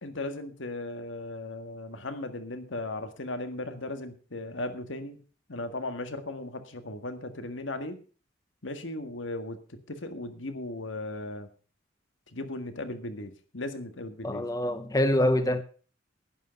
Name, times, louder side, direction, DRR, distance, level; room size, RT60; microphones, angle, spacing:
voice 1, 0.0-8.0 8.6-11.5 12.3-14.5, left 2 dB, 75° left, 1.8 m, -37 dB
voice 2, 14.2-15.6, left 1 dB, 20° left, 0.8 m, -25 dB
11.0 x 10.5 x 5.3 m
head